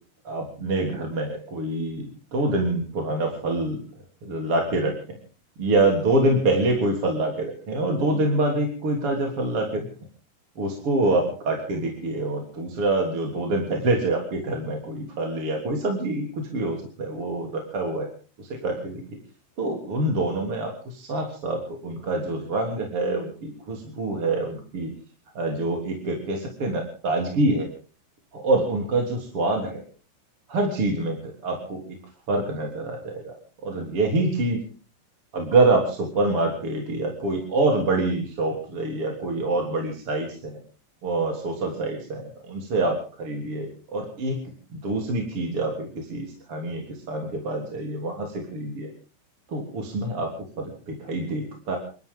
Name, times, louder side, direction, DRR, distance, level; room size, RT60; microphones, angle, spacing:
voice 1, 0.2-3.8 4.2-5.2 5.6-9.9 10.6-18.1 18.4-18.9 19.6-24.9 25.4-27.7 28.3-29.8 30.5-31.2 31.4-32.0 32.3-33.4 33.6-34.6 35.3-40.6 41.0-44.4 44.7-48.9 49.5-50.3 50.6-51.8, right 2 dB, 30° right, 1 dB, 3.6 m, -26 dB
29.0 x 13.0 x 3.8 m, 0.39 s
omnidirectional pair, 5.6 m